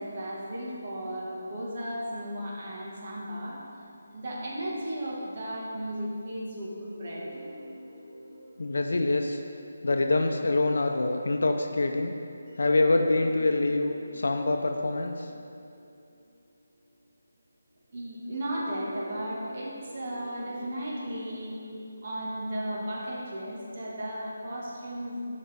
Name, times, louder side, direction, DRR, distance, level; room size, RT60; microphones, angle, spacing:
voice 1, 0.0-3.6 4.1-7.3 17.9-21.6 22.0-25.2, right 1 dB, 40° right, -4 dB, 1.7 m, -35 dB
sound 1, 7.0-10.9 12.5-16.9 18.3-23.5, equal, 20° right, 1.6 m, -46 dB
voice 2, 8.6-9.4 9.8-12.1 12.6-15.3, left 2 dB, 70° left, 4 dB, 0.6 m, -25 dB
12.0 x 5.0 x 3.5 m, 2.5 s
figure-of-eight pair, 170°, 0 cm